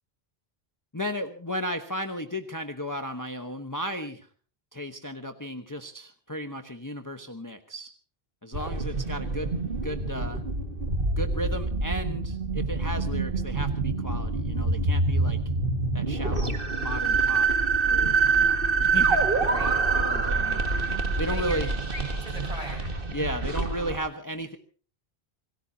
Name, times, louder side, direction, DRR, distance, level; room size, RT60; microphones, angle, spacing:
voice 1, 0.9-4.3 4.7-7.9 8.4-9.6 9.8-10.4 11.2-15.4 15.9-17.5 17.9-19.3 19.5-21.7 23.1-24.6, equal, 20° left, 7 dB, 1.1 m, -35 dB
sound 1, 8.5-24.0, right 4 dB, 60° right, 2.1 m, -26 dB
voice 2, 9.0-9.3 19.5-19.7 21.3-22.8, equal, 35° right, 1 dB, 5.7 m, -41 dB
26.5 x 18.5 x 2.8 m, 0.40 s
omnidirectional pair, 1.0 m